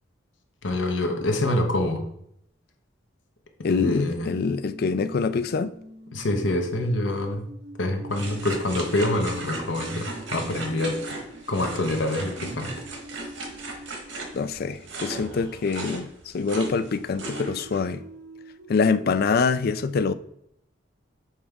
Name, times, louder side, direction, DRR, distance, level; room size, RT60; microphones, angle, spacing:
voice 1, 0.6-2.1 3.7-4.3 6.1-7.5 7.8-11.0 11.5-12.7, left 1 dB, 75° left, 1.0 m, -26 dB
voice 2, 3.6-5.7 14.3-18.0 18.7-20.1, left 4 dB, 55° left, 0.4 m, -25 dB
sound 1, 3.9-14.9 16.7-19.4, right 1 dB, 65° right, 1.0 m, -44 dB
sound 2, 8.1-17.9, right 2 dB, 90° right, 1.4 m, -37 dB
7.2 x 4.6 x 3.5 m
head